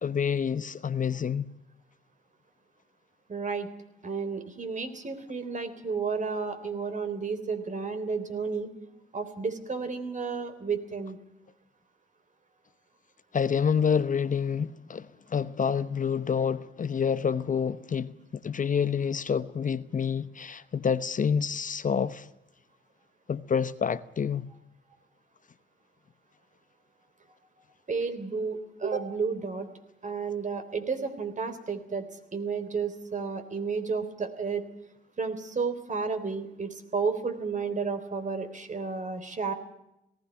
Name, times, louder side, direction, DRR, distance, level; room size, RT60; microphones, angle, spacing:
voice 1, 0.0-1.4 13.3-22.3 23.3-24.5, left 7 dB, 40° left, 0.9 m, -28 dB
voice 2, 3.3-3.7 4.0-8.7 9.1-11.2 27.9-29.7 30.0-32.1 32.3-34.7 35.2-39.5, right 5 dB, 40° right, 3.5 m, -32 dB
18.5 x 16.0 x 9.8 m
supercardioid pair, 65°, 20 cm